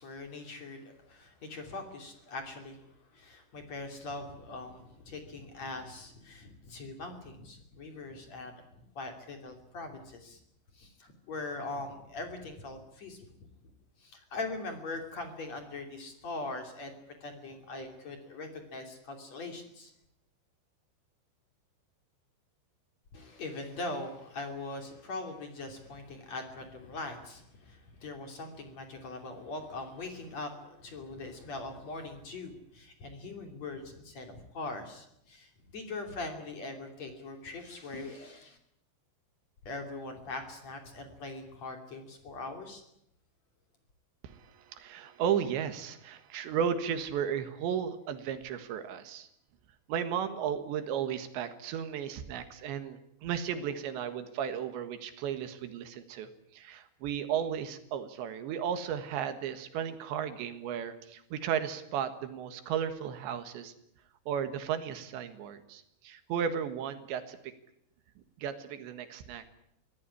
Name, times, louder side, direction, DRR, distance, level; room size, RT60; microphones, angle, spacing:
voice 1, 0.0-2.9 3.1-8.6 9.0-10.4 10.7-13.2 14.0-16.9 17.2-19.9 23.1-38.6 39.7-42.8, left 2 dB, 40° left, 5 dB, 3.5 m, -41 dB
voice 2, 44.2-49.3 49.9-63.7 64.3-67.5 68.4-69.4, right 8 dB, 80° right, 10 dB, 3.8 m, -34 dB
24.5 x 17.0 x 9.9 m, 0.78 s
omnidirectional pair, 5.3 m